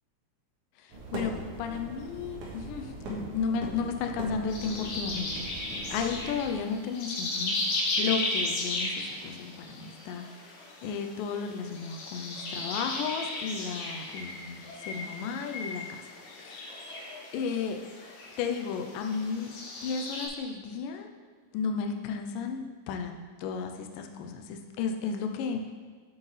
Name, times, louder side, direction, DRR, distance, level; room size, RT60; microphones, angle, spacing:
voice 1, 0.8-1.3 1.6-7.6 8.0-10.5 10.8-15.8 16.4-17.0 17.3-17.8 18.4-19.5 19.8-21.1 21.5-23.1 23.4-25.7, left 5 dB, 80° left, 4 dB, 2.2 m, -33 dB
sound 1, 0.9-6.6, right 1 dB, 70° right, 2.8 m, -41 dB
sound 2, 4.5-20.3, left 2 dB, 65° left, 2.2 m, -36 dB
8.7 x 7.5 x 3.3 m, 1.5 s
omnidirectional pair, 4.0 m